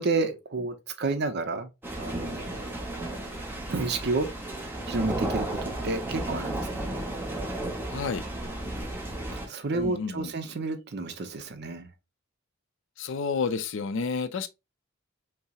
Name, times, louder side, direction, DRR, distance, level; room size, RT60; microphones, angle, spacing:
voice 1, 0.0-1.7 2.0-3.1 3.7-4.3 4.9-6.9 9.3-11.9, right 3 dB, 50° right, 0.6 m, -31 dB
sound 1, 1.8-9.5, right 1 dB, 10° right, 0.7 m, -33 dB
voice 2, 7.9-8.2 9.7-10.3 13.0-14.5, left 5 dB, 60° left, 0.4 m, -30 dB
5.4 x 2.0 x 2.3 m
head